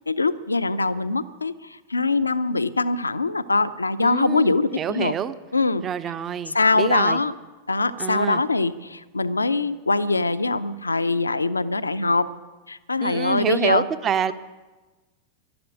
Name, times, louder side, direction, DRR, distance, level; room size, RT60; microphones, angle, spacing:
voice 1, 0.1-5.1 5.5-5.8 6.5-7.3 7.7-12.3 12.7-13.9, left 3 dB, 80° left, 13 dB, 0.6 m, -23 dB
voice 2, 4.0-5.4 5.8-7.2 8.0-8.4 13.0-14.3, right 8 dB, 25° right, 14 dB, 0.8 m, -27 dB
12.0 x 12.0 x 10.0 m, 1.2 s
figure-of-eight pair, 90°, 0 cm